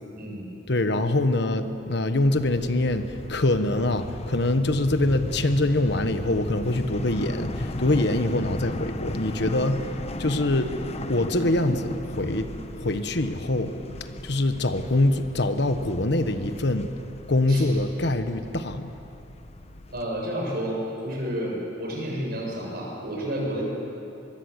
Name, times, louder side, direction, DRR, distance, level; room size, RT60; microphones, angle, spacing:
voice 1, 0.2-0.5 17.5-17.7 19.9-23.6, equal, 55° right, -2 dB, 7.3 m, -30 dB
voice 2, 0.7-9.9 10.2-10.8 11.1-13.7 14.2-16.9 17.3-19.0, left 2 dB, 60° left, 9 dB, 1.2 m, -24 dB
sound 1, 2.2-20.0, left 1 dB, 35° left, 1.0 m, -36 dB
24.0 x 22.0 x 8.1 m, 2.9 s
head